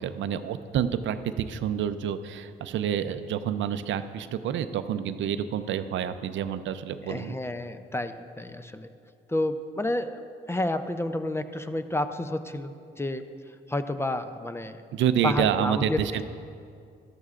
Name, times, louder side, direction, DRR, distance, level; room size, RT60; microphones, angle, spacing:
voice 1, 0.0-7.3 14.9-16.2, right 9 dB, 70° right, 11 dB, 0.5 m, -28 dB
voice 2, 7.0-8.9 9.3-10.2 10.5-13.2 13.7-14.8 15.2-16.0, left 1 dB, 10° left, 9 dB, 0.5 m, -30 dB
12.5 x 12.0 x 2.5 m, 2.4 s
cardioid pair, 90°, 20 cm